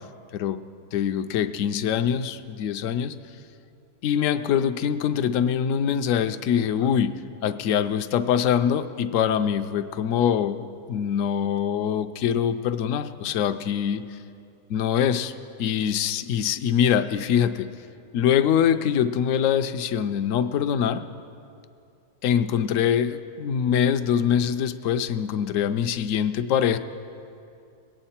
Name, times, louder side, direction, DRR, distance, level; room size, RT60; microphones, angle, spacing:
voice 1, 0.9-3.1 4.0-7.1 7.4-14.0 14.7-15.3 15.6-17.7 18.1-21.0 22.2-26.8, left 8 dB, 70° left, 10 dB, 0.9 m, -24 dB
21.5 x 8.9 x 4.3 m, 2.5 s
omnidirectional pair, 1.6 m